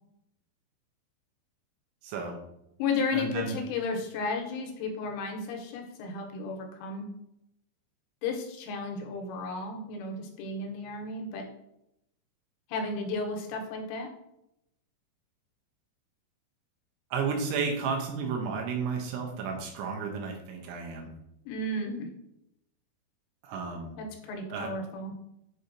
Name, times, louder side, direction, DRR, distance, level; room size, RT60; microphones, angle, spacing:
voice 1, 2.0-2.4 3.1-3.6 17.1-21.1 23.4-24.0 24.5-24.7, right 5 dB, 85° right, 1 dB, 2.9 m, -32 dB
voice 2, 2.8-7.1 8.2-11.5 12.7-14.1 21.5-22.1 24.0-25.1, left 3 dB, 90° left, 2 dB, 3.3 m, -33 dB
7.8 x 2.7 x 2.5 m, 0.82 s
omnidirectional pair, 5.5 m